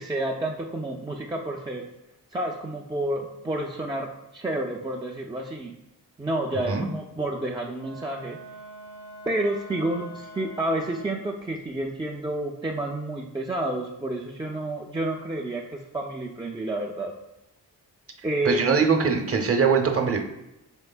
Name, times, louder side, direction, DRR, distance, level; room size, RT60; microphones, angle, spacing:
voice 1, 0.0-1.8 2.3-5.7 6.2-8.4 9.3-17.1 18.2-18.7, right 1 dB, 10° right, -2 dB, 0.3 m, -30 dB
Wind instrument woodwind instrument, 7.7-11.4, right 1 dB, 45° left, 0.6 m, -44 dB
voice 2, 18.4-20.2, right 5 dB, 35° right, 4 dB, 0.7 m, -22 dB
4.5 x 3.1 x 2.2 m, 0.90 s
cardioid pair, 50°, 41 cm